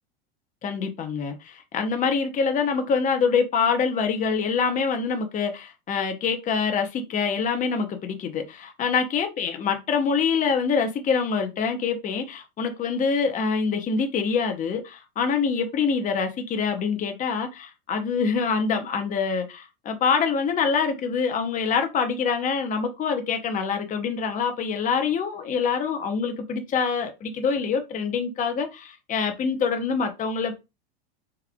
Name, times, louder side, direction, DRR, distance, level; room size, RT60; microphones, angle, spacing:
voice 1, 0.6-30.6, left 5 dB, 25° left, 0.7 m, -25 dB
3.5 x 3.3 x 2.3 m
hypercardioid pair, 110°, 31 cm